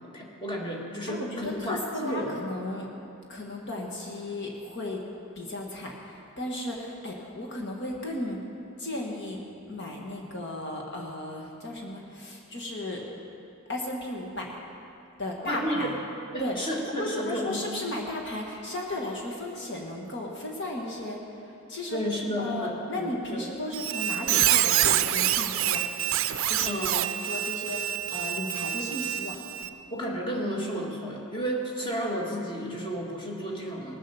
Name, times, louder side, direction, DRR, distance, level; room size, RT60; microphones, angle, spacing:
voice 1, 0.1-2.4 15.4-15.9 16.3-17.7 21.9-23.5 26.6-27.0 29.9-34.0, equal, 20° left, -1 dB, 1.8 m, -32 dB
voice 2, 1.1-2.9 3.3-5.0 5.3-8.4 8.8-13.0 13.7-14.5 15.2-15.9 16.4-16.6 17.0-21.2 21.4-22.0 22.4-25.8 26.5-29.4, left 1 dB, 55° left, -1 dB, 1.5 m, -35 dB
Squeak, 23.7-29.7, right 12 dB, 65° right, 0.5 m, -26 dB
18.5 x 7.4 x 7.0 m, 2.7 s
head